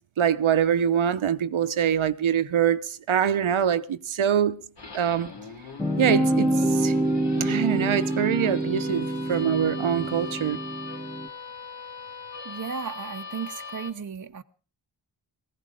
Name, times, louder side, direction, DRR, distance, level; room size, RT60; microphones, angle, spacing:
voice 1, 0.2-4.6 4.9-5.3 6.0-6.9 7.4-10.6, right 8 dB, 90° right, 0.9 m, -24 dB
sound 1, 4.8-13.9, left 4 dB, 65° left, 3.2 m, -40 dB
sound 2, 5.8-11.3, right 1 dB, ahead, 1.0 m, -26 dB
voice 2, 12.4-14.4, right 6 dB, 40° right, 0.7 m, -35 dB
18.5 x 15.0 x 5.0 m
wide cardioid pair, 75°, 47 cm